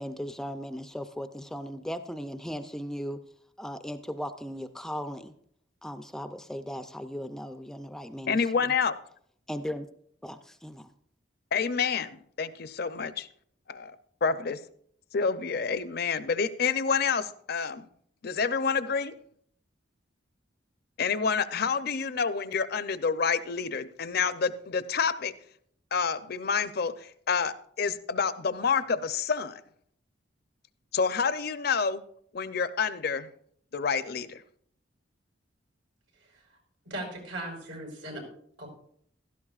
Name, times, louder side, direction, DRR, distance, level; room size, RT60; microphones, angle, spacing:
voice 1, 0.0-3.2 3.6-5.3 5.8-8.7 9.5-9.9 10.2-10.9, equal, 5° left, 0.4 m, -37 dB
voice 2, 8.3-8.9 11.5-13.3 13.7-13.9 14.2-14.6 15.1-17.9 18.2-19.1 21.0-25.3 25.9-29.6 30.9-32.0 32.3-33.3 33.7-34.4, left 5 dB, 55° left, 0.5 m, -28 dB
voice 3, 36.8-38.2 38.6-38.7, right 1 dB, 85° right, 4.7 m, -38 dB
16.0 x 12.5 x 2.4 m
head